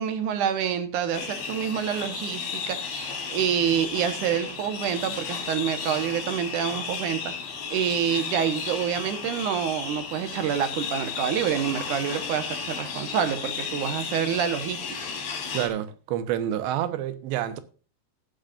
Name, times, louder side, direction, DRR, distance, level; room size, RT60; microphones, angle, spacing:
voice 1, 0.0-14.8, right 8 dB, 65° right, 2.1 m, -27 dB
sound 1, 1.1-15.7, left 5 dB, 90° left, 5.0 m, -34 dB
voice 2, 15.5-17.6, right 11 dB, 90° right, 3.3 m, -28 dB
18.5 x 7.9 x 2.5 m
omnidirectional pair, 5.0 m